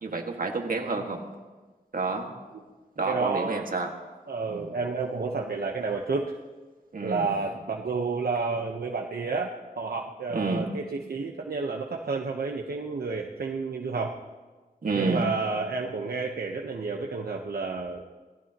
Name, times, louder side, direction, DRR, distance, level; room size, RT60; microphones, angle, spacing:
voice 1, 0.0-1.3 1.9-2.3 3.0-3.9 4.5-4.7 6.9-7.3 10.3-10.7 14.8-15.2, right 3 dB, 65° right, 2 dB, 2.0 m, -29 dB
voice 2, 3.1-3.7 4.3-6.2 7.0-9.5 9.8-14.1 14.9-18.0, right 4 dB, 85° right, 0 dB, 1.1 m, -30 dB
26.5 x 18.0 x 3.0 m, 1.3 s
wide cardioid pair, 95°, 15 cm